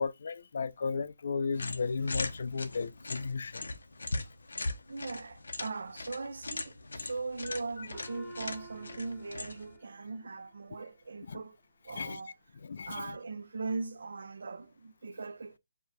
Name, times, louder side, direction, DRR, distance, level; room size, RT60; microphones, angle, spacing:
voice 1, 0.0-3.6 7.4-7.9 11.3-11.4 11.9-12.2 12.6-13.1, left 5 dB, 60° left, 0.5 m, -35 dB
sound 1, 1.5-9.8, left 2 dB, 90° left, 0.8 m, -40 dB
voice 2, 4.9-11.6 11.8-12.3 12.9-15.6, right 3 dB, 70° right, 0.8 m, -40 dB
Gong, 7.9-10.8, right 1 dB, 5° left, 0.9 m, -51 dB
4.7 x 2.3 x 4.0 m
hypercardioid pair, 165°, 0 cm